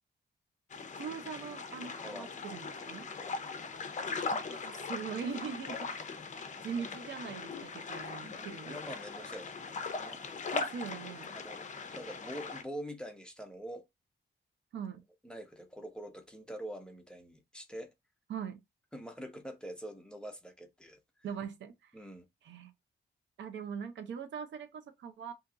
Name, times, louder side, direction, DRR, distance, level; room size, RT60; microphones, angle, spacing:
sound 1, 0.7-12.6, left 4 dB, 40° left, 0.5 m, -40 dB
voice 1, 1.0-3.1 4.5-5.9 6.6-8.8 10.5-11.4 14.7-15.0 18.3-18.6 21.2-21.9 22.4-22.7 23.4-25.3, right 7 dB, 85° right, 0.6 m, -41 dB
voice 2, 8.3-10.2 11.3-11.6 11.9-13.8 15.2-17.9 18.9-21.0 21.9-22.2, equal, 5° left, 0.7 m, -45 dB
2.8 x 2.3 x 3.7 m
cardioid pair, 110°, 19 cm